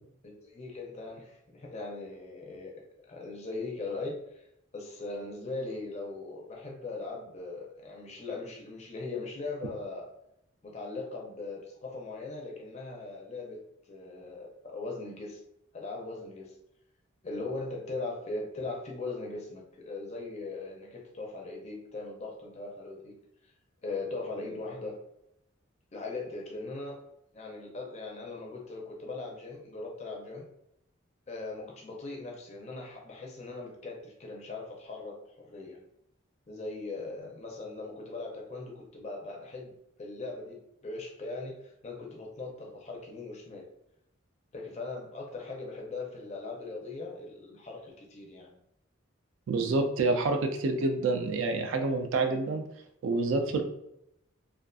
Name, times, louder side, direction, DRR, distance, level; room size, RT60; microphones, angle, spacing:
voice 1, 0.2-2.7 3.1-4.5 4.7-10.1 10.6-13.6 13.9-15.4 15.7-16.5 17.2-23.2 23.8-25.0 25.9-27.0 27.3-30.4 31.3-35.8 36.5-43.6 44.5-48.5, left 3 dB, 35° left, -1 dB, 0.4 m, -39 dB
voice 2, 49.5-52.6 53.0-53.6, right 3 dB, 70° right, 5 dB, 0.3 m, -27 dB
2.4 x 2.3 x 2.3 m, 0.80 s
head